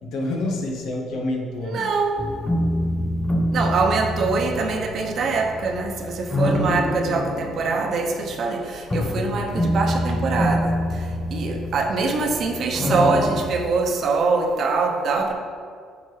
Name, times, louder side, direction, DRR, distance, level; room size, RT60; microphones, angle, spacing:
voice 1, 0.0-1.9 3.6-3.7, left 2 dB, 70° left, 0 dB, 1.1 m, -28 dB
voice 2, 1.6-2.2 3.5-15.3, right 4 dB, 60° right, 3 dB, 0.9 m, -24 dB
sound 1, 2.2-13.4, left 1 dB, 25° left, 1.0 m, -26 dB
8.7 x 5.2 x 3.3 m, 2.1 s
hypercardioid pair, 60°, 0 cm